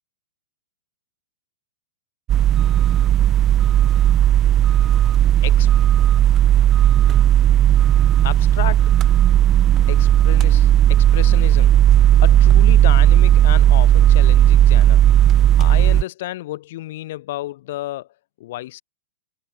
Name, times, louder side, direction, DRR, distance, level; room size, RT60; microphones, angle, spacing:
sound 1, 2.3-16.0, right 11 dB, 25° right, 1.0 m, -14 dB
voice 1, 8.2-8.9 9.9-11.8 12.2-15.0 15.6-18.1 18.4-18.8, left 16 dB, 55° left, 7.5 m, -31 dB
hypercardioid pair, 145°, 0 cm